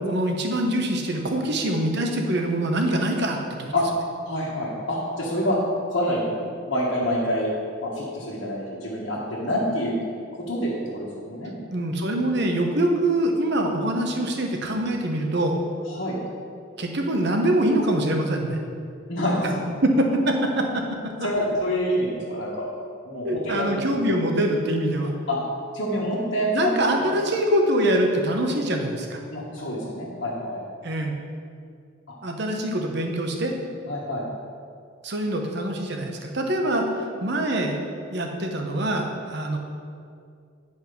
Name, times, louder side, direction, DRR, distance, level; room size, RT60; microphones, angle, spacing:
voice 1, 0.0-3.7 11.7-15.6 16.8-18.6 20.0-20.6 23.2-25.1 26.5-29.2 30.8-31.2 32.2-33.5 35.0-39.6, right 1 dB, 60° right, 3 dB, 1.0 m, -24 dB
voice 2, 4.2-5.6 5.9-6.3 6.7-7.5 7.8-10.0 10.5-11.5 15.9-16.2 19.1-19.6 21.2-22.7 23.0-24.0 25.3-25.4 25.7-27.0 29.3-30.6 33.9-34.2, equal, 60° left, -8 dB, 1.6 m, -27 dB
9.8 x 5.4 x 5.3 m, 2.3 s
head